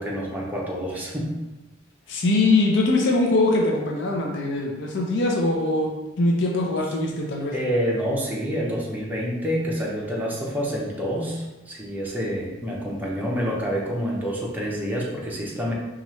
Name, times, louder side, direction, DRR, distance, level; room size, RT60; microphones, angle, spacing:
voice 1, 0.0-1.3 7.5-15.7, equal, 10° right, -4 dB, 0.7 m, -27 dB
voice 2, 2.1-5.9 6.2-7.5, left 2 dB, 65° left, 0 dB, 0.6 m, -22 dB
4.2 x 2.4 x 3.1 m, 1.1 s
head